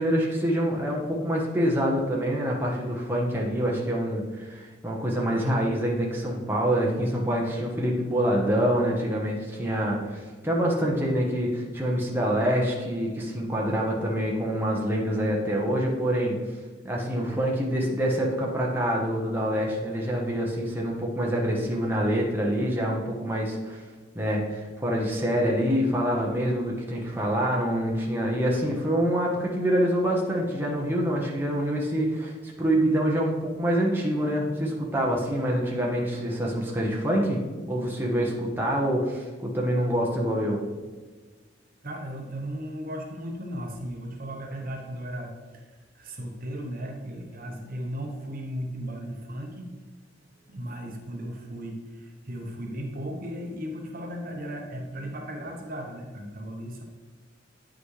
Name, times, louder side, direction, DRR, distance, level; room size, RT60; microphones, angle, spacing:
voice 1, 0.0-16.4 16.8-23.8 24.1-37.4 37.7-40.6, equal, 10° right, -3 dB, 1.1 m, -26 dB
voice 2, 41.8-45.6 45.9-49.7 50.5-56.8, equal, 50° right, 1 dB, 1.0 m, -36 dB
9.2 x 6.0 x 3.2 m, 1.4 s
head